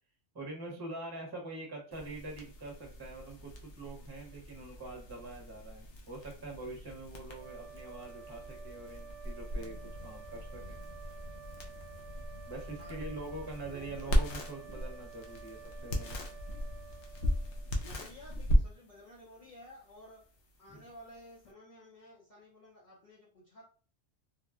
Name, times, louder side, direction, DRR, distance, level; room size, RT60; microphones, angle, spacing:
voice 1, 0.3-10.8 12.5-16.2 20.7-20.8, right 2 dB, 25° right, 0 dB, 0.7 m, -44 dB
sound 1, 1.9-21.5, equal, 85° left, 1.0 m, -37 dB
sound 2, 7.3-18.0, right 9 dB, 55° right, 0.8 m, -52 dB
voice 2, 12.8-13.1 13.7-14.5 17.8-20.2 20.6-23.7, left 1 dB, 45° left, -6 dB, 0.7 m, -53 dB
3.4 x 2.2 x 2.4 m, 0.40 s
omnidirectional pair, 1.2 m